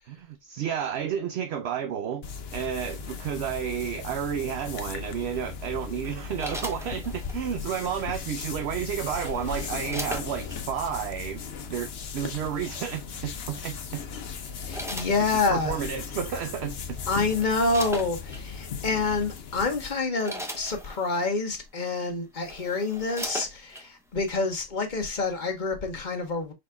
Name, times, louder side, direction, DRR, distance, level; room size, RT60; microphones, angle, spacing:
voice 1, 0.1-2.2 2.5-14.0 15.2-17.0, right 8 dB, 65° right, 0.8 m, -31 dB
sound 1, 2.2-20.0, left 6 dB, 55° left, 0.9 m, -37 dB
sound 2, 6.0-7.4 8.7-10.6 11.6-11.9 13.5-13.8 14.4-15.7 16.6-16.7 17.0-18.4 19.2-19.3 19.8-21.3 21.9-22.0 22.3-23.9 24.3-24.4, equal, 5° right, 0.7 m, -39 dB
voice 2, 14.6-15.8 17.1-26.5, left 3 dB, 40° left, 1.1 m, -27 dB
5.2 x 4.1 x 2.2 m
omnidirectional pair, 1.4 m